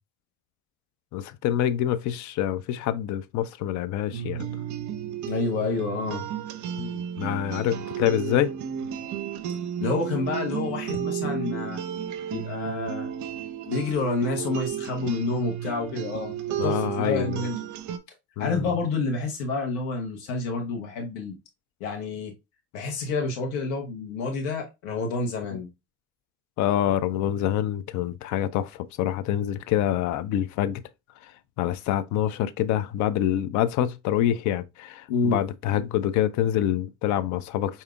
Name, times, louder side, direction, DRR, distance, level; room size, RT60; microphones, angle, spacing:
voice 1, 1.1-4.5 6.7-8.5 14.4-14.5 16.6-17.4 18.4-18.7 25.5-25.6 26.6-30.8 31.2-31.3 31.6-37.8, left 11 dB, 45° left, 0.5 m, -26 dB
sound 1, 4.1-18.0, right 9 dB, 45° right, 0.6 m, -33 dB
voice 2, 5.3-6.2 9.8-11.8 12.3-13.1 13.7-16.3 16.6-17.6 18.4-21.4 21.8-22.3 22.7-25.7 35.1-35.4, left 3 dB, 65° left, 1.1 m, -28 dB
4.8 x 2.8 x 2.3 m
hypercardioid pair, 70°, 44 cm